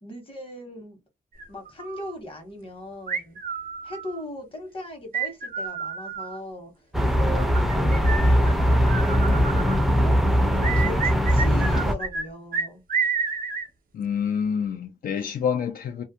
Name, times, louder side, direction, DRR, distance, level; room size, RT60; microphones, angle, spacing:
voice 1, 0.0-1.0 1.5-3.4 3.8-6.7 7.1-10.2 10.5-12.8, left 1 dB, 40° left, 1.1 m, -38 dB
sound 1, 1.4-2.1 3.1-4.2 5.1-6.4 7.3-9.8 10.6-12.3 12.5-13.7, right 5 dB, 80° right, 0.6 m, -30 dB
sound 2, 6.9-11.9, equal, ahead, 0.4 m, -20 dB
voice 2, 13.9-16.0, left 7 dB, 80° left, 0.5 m, -27 dB
2.4 x 2.1 x 2.7 m
wide cardioid pair, 125°, 15 cm